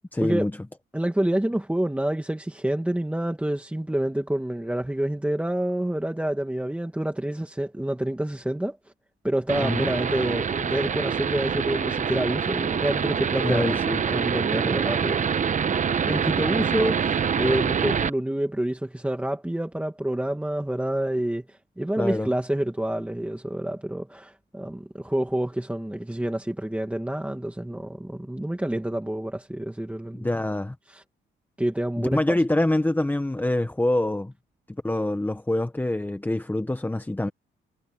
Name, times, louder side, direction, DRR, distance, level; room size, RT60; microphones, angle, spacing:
voice 1, 0.1-0.5 9.6-9.9 13.4-14.0 22.0-22.3 30.1-30.7 32.0-34.3 34.7-37.3, left 1 dB, 10° left, 1.3 m, -25 dB
voice 2, 0.9-8.8 9.2-15.3 16.1-30.3 30.9-31.0 31.6-32.4, right 1 dB, 5° right, 2.2 m, -28 dB
sound 1, 9.5-18.1, right 7 dB, 40° right, 1.0 m, -25 dB
cardioid pair, 90°, 20 cm